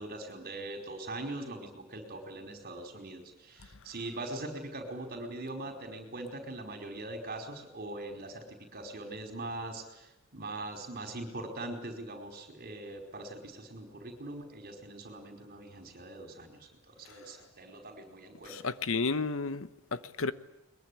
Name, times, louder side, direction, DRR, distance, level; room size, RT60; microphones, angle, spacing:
voice 1, 0.0-8.4 8.7-18.5, right 2 dB, 45° right, 4 dB, 4.9 m, -42 dB
voice 2, 18.5-20.3, left 4 dB, 60° left, 14 dB, 1.0 m, -32 dB
22.0 x 22.0 x 10.0 m, 0.91 s
head